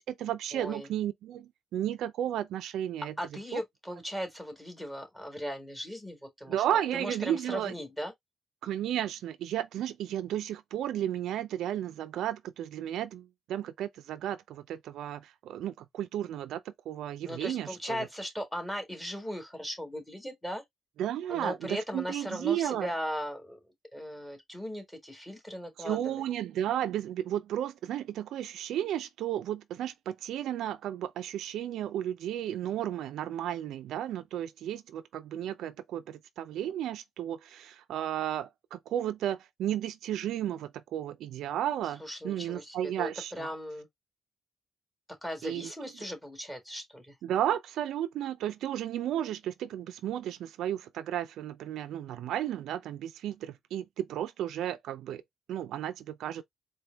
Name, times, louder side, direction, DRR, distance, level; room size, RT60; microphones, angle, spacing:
voice 1, 0.0-3.1 3.5-3.6 6.5-7.7 8.6-16.6 16.9-18.1 21.0-22.9 25.8-43.5 45.4-45.7 47.2-55.2 55.5-56.4, right 11 dB, 80° right, 0.4 m, -33 dB
voice 2, 0.5-0.9 3.2-6.6 6.9-8.1 17.3-20.6 21.3-23.6 23.9-26.2 42.0-43.9 45.2-47.2, equal, 10° left, 1.8 m, -38 dB
4.3 x 2.3 x 3.4 m
cardioid pair, 90°, 0 cm